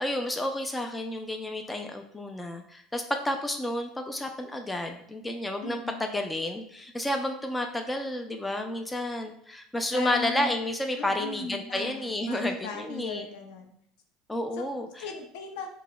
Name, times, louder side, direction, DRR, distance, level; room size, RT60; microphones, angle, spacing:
voice 1, 0.0-13.3 14.3-15.1, left 1 dB, 10° left, 5 dB, 0.3 m, -31 dB
voice 2, 5.6-6.0 9.9-10.5 11.0-13.7 14.5-14.6 15.0-15.7, left 3 dB, 75° left, 3 dB, 0.5 m, -37 dB
4.5 x 2.0 x 2.2 m, 0.70 s
supercardioid pair, 105°, 0 cm